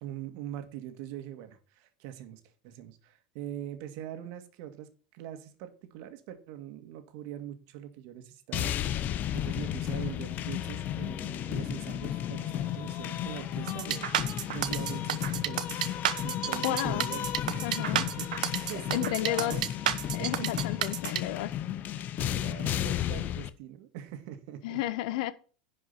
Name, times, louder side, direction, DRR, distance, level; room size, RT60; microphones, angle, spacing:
voice 1, 0.0-4.9 5.1-8.9 9.3-16.0 16.2-18.3 18.6-19.7 20.2-20.9 22.2-24.8, right 11 dB, 65° right, 2.0 m, -42 dB
sound 1, 8.5-23.5, left 11 dB, 45° left, 0.9 m, -33 dB
sound 2, 13.7-21.2, right 11 dB, 85° right, 0.9 m, -31 dB
voice 2, 16.6-17.1 17.6-18.0 18.7-19.6 20.1-21.5 24.6-25.3, left 15 dB, 70° left, 1.1 m, -32 dB
11.0 x 5.3 x 5.9 m
hypercardioid pair, 100°, 4 cm